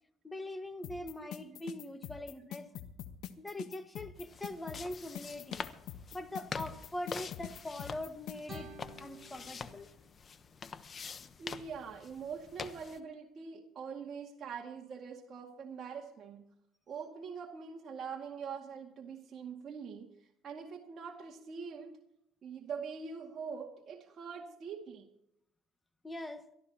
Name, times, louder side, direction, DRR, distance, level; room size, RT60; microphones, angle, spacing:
voice 1, 0.2-2.7 3.4-5.6 6.1-8.7 9.0-9.9 26.0-26.5, left 1 dB, 15° left, 9 dB, 1.6 m, -42 dB
sound 1, 0.8-8.6, left 11 dB, 70° left, 1.2 m, -44 dB
sound 2, 4.1-13.0, left 6 dB, 35° left, 1.0 m, -46 dB
sound 3, 8.5-11.5, right 3 dB, 25° right, 3.7 m, -54 dB
voice 2, 11.4-16.4 16.9-22.0 22.4-25.1, right 6 dB, 45° right, 0 dB, 2.1 m, -44 dB
22.5 x 14.0 x 2.9 m, 0.78 s
cardioid pair, 100°, 0 cm